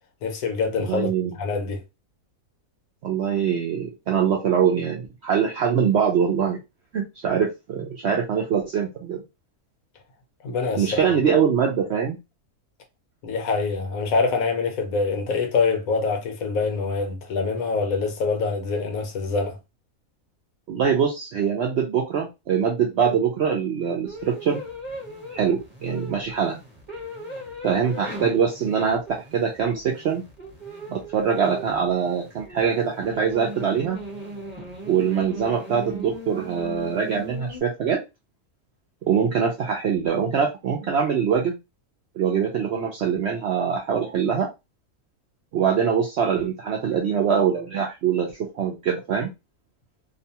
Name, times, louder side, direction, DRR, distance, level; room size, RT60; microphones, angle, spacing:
voice 1, 0.2-1.1 1.3-1.8 10.4-11.0 13.2-19.6, left 4 dB, 70° left, 1.0 m, -25 dB
voice 2, 0.8-1.3 3.0-6.6 6.9-9.2 10.8-12.2 20.7-24.6 25.3-26.6 27.6-29.0 29.3-30.2 30.9-34.0 34.9-38.0 39.0-41.6 42.2-44.5 45.5-49.3, right 7 dB, 70° right, 0.6 m, -23 dB
sound 1, 24.0-37.6, right 1 dB, 20° right, 0.9 m, -38 dB
2.6 x 2.2 x 2.7 m
omnidirectional pair, 1.6 m